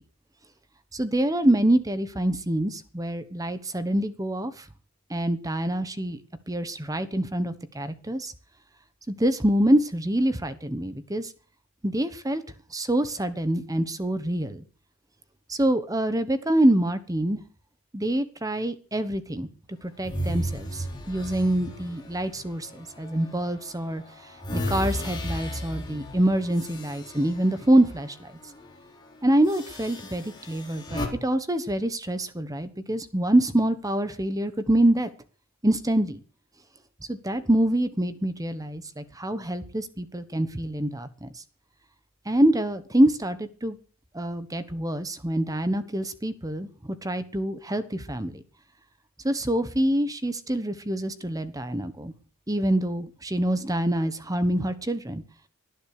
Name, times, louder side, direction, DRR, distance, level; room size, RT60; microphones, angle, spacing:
voice 1, 0.9-4.6 5.1-6.2 6.5-8.3 9.1-11.3 11.8-12.4 12.7-14.6 15.5-17.4 17.9-19.5 19.8-24.0 24.5-28.3 29.2-35.1 35.6-36.2 37.1-41.3 42.3-43.8 44.1-48.4 49.2-52.1 52.5-55.2, right 1 dB, 15° right, 12 dB, 1.2 m, -25 dB
sound 1, 20.0-23.3 23.8-28.1 28.4-28.7 29.5-31.1, equal, 20° left, 4.1 m, -34 dB
19.0 x 10.5 x 6.6 m, 0.41 s
head